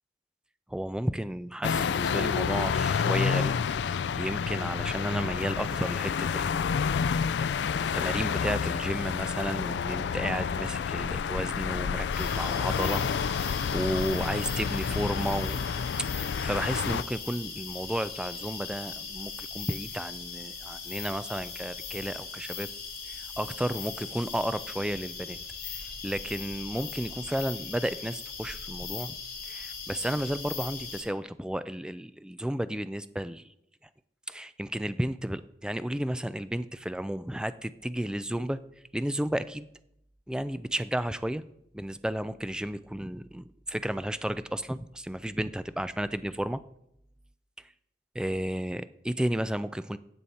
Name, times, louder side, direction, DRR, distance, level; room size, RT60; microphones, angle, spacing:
voice 1, 0.7-3.6 3.9-15.6 16.1-22.7 23.0-25.4 25.6-29.2 29.4-33.5 34.3-38.6 38.9-39.7 40.3-41.4 41.7-46.6 47.6-47.7 48.1-50.0, right 1 dB, 5° right, 13 dB, 0.3 m, -33 dB
sound 1, 1.6-17.0, left 6 dB, 80° left, 0.4 m, -29 dB
sound 2, 12.1-31.0, left 5 dB, 65° left, 4.6 m, -39 dB
12.5 x 8.0 x 4.3 m, 0.78 s
head